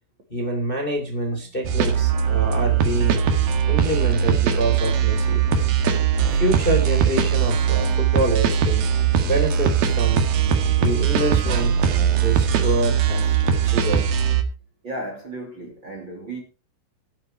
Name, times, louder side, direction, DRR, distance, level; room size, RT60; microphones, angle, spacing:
voice 1, 0.3-3.2 3.7-5.4 6.3-8.9 9.2-10.2 10.8-11.8 12.1-14.1, right 1 dB, 15° left, 3.0 m, -26 dB
sound 1, 1.6-14.4, right 7 dB, 65° right, 3.4 m, -20 dB
voice 2, 14.8-16.4, right 1 dB, 30° right, 3.1 m, -34 dB
13.0 x 11.5 x 4.6 m
omnidirectional pair, 4.8 m